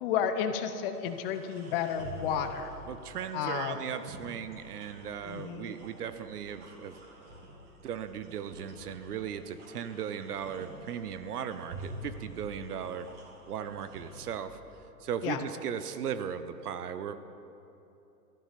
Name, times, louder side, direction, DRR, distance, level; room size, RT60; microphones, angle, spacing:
voice 1, 0.0-2.7 3.3-3.7 5.2-5.7 15.2-15.4, left 8 dB, 35° left, 9 dB, 0.8 m, -32 dB
sound 1, 1.0-14.3, right 1 dB, 45° right, 3.3 m, -49 dB
voice 2, 2.9-7.0 7.8-13.1 13.5-14.6 15.0-17.2, right 8 dB, 65° right, 11 dB, 0.9 m, -37 dB
13.5 x 11.5 x 5.1 m, 2.9 s
figure-of-eight pair, 110°, 50 cm